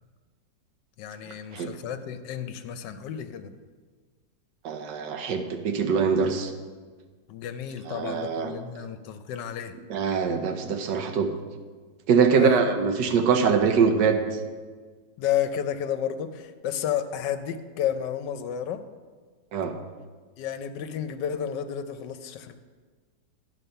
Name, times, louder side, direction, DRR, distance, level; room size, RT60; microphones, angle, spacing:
voice 1, 1.0-3.5 7.3-9.7 12.3-12.6 15.2-18.8 20.4-22.6, left 9 dB, 75° left, 10 dB, 1.2 m, -31 dB
voice 2, 4.6-6.5 7.9-8.5 9.9-11.3 12.1-14.2 19.5-19.7, right 6 dB, 75° right, 5 dB, 1.4 m, -23 dB
11.0 x 5.2 x 5.6 m, 1.5 s
omnidirectional pair, 2.0 m